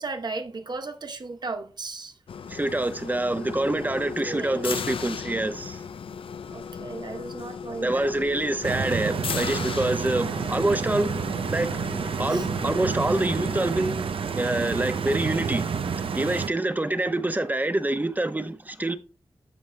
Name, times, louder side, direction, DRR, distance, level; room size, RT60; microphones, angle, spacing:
voice 1, 0.0-2.2 4.3-4.7 6.5-8.1 12.3-12.5, right 3 dB, 50° right, 0.9 m, -35 dB
sound 1, 2.3-13.7, left 6 dB, 80° left, 0.4 m, -37 dB
voice 2, 2.5-5.8 7.8-11.2 11.5-11.7 12.2-14.1 14.4-15.7 16.0-19.0, right 2 dB, 20° right, 0.8 m, -26 dB
Stream, 8.6-16.5, right 6 dB, 80° right, 0.6 m, -29 dB
14.0 x 5.4 x 2.2 m
wide cardioid pair, 80°, 9 cm